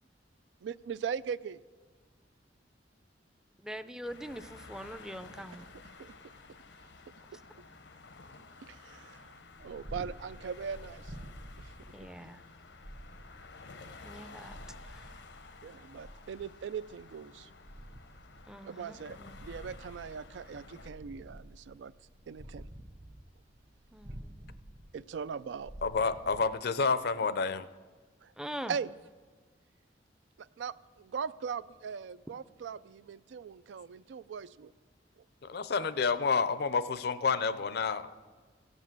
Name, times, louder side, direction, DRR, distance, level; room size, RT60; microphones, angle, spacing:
voice 1, 0.6-1.6 6.0-6.1 8.6-11.1 11.6-11.7 14.2-14.4 15.6-17.5 18.6-21.9 22.3-22.7 24.9-25.7 28.2-28.3 28.7-28.9 30.4-34.7, right 6 dB, 80° right, 17 dB, 0.3 m, -40 dB
voice 2, 3.6-5.6 11.9-12.4 14.0-14.6 18.5-19.4 23.9-24.5 28.4-28.7, equal, 5° right, 11 dB, 0.4 m, -43 dB
sound 1, 4.0-20.9, left 4 dB, 85° left, 0.8 m, -53 dB
Purr, 9.4-27.1, equal, 50° right, 1.2 m, -50 dB
voice 3, 25.8-27.7 35.4-38.2, left 5 dB, 60° left, 14 dB, 0.5 m, -29 dB
15.5 x 8.1 x 7.4 m, 1.5 s
head